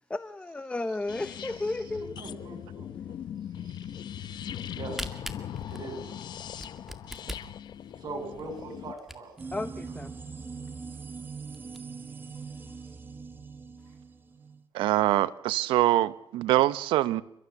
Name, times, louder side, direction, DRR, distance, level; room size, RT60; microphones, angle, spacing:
voice 1, 0.1-2.2 9.5-10.1, left 2 dB, 15° left, 0.9 m, -33 dB
sound 1, 1.1-8.9, left 10 dB, 60° left, 0.9 m, -40 dB
voice 2, 2.2-3.1 3.5-4.1 4.8-5.1 5.7-6.1 8.0-9.4, right 3 dB, 55° right, 7.0 m, -41 dB
Camera, 4.6-9.5 10.1-10.2 10.4-10.5 11.0-11.1 11.4-11.8, equal, 5° right, 2.1 m, -41 dB
sound 2, 9.4-14.6, right 4 dB, 25° right, 1.8 m, -42 dB
voice 3, 14.7-17.2, right 14 dB, 85° right, 0.9 m, -24 dB
30.0 x 13.5 x 7.2 m
cardioid pair, 90°, 8 cm